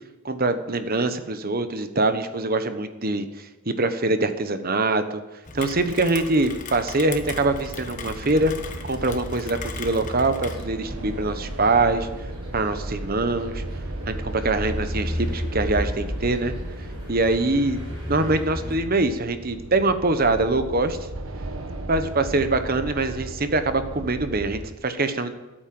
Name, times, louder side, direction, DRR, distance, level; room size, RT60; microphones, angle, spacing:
voice 1, 0.2-3.3 3.7-5.2 5.5-8.5 8.8-12.1 12.5-13.6 14.1-16.5 17.1-17.8 18.1-21.0 21.9-25.3, right 2 dB, 45° right, 9 dB, 1.1 m, -23 dB
Rain, 5.4-10.6, left 4 dB, 35° left, 1.2 m, -38 dB
sound 1, 7.2-24.7, right 2 dB, 80° right, 1.3 m, -36 dB
sound 2, 8.2-18.7, equal, 25° right, 6.5 m, -35 dB
13.5 x 8.9 x 7.8 m, 1.1 s
head